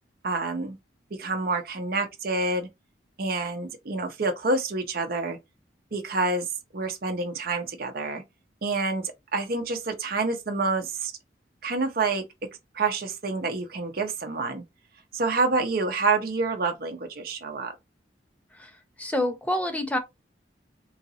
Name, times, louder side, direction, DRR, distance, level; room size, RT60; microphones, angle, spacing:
voice 1, 0.2-0.8 1.2-2.7 3.2-5.4 5.9-6.5 6.7-8.2 8.6-11.1 11.6-12.2 12.7-14.6 15.1-17.7, right 3 dB, 55° right, 0.7 m, -27 dB
voice 2, 19.0-20.0, left 1 dB, 10° left, 0.6 m, -27 dB
3.9 x 2.5 x 2.7 m
head